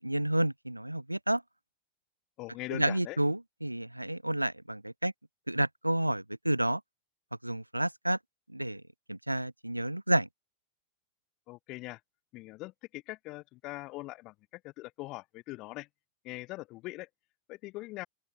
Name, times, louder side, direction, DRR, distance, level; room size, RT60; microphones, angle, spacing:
voice 1, 0.0-1.4 2.7-5.1 5.5-6.8 7.4-8.2 8.5-8.8 9.1-10.3, right 1 dB, 85° right, 1.6 m, -30 dB
voice 2, 2.4-3.2 11.5-12.0 12.3-15.9 16.2-17.1 17.5-18.1, left 20 dB, 40° left, 3.5 m, -42 dB
open air
figure-of-eight pair, 90°, 0 cm